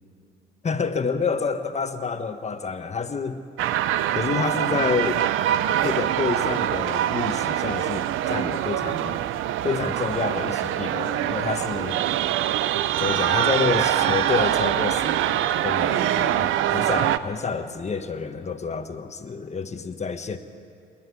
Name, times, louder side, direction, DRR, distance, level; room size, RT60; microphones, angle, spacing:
voice 1, 0.6-3.4 4.1-5.2 5.8-9.2 9.6-12.0 13.0-20.4, left 5 dB, 35° left, 8 dB, 1.3 m, -28 dB
sound 1, 3.6-17.2, right 12 dB, 90° right, 0.6 m, -24 dB
26.0 x 10.5 x 9.7 m, 2.4 s
cardioid pair, 90°, 20 cm